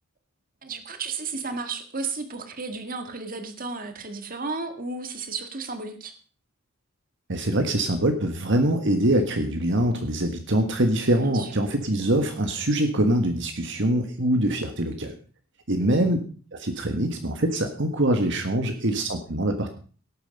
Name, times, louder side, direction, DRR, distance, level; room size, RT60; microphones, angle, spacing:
voice 1, 0.6-6.1 11.2-11.5 15.8-16.0, right 4 dB, 40° right, 7 dB, 1.8 m, -33 dB
voice 2, 7.3-15.2 15.7-16.2 16.5-19.7, right 1 dB, 55° right, 5 dB, 1.6 m, -24 dB
17.5 x 9.1 x 5.3 m, 0.40 s
head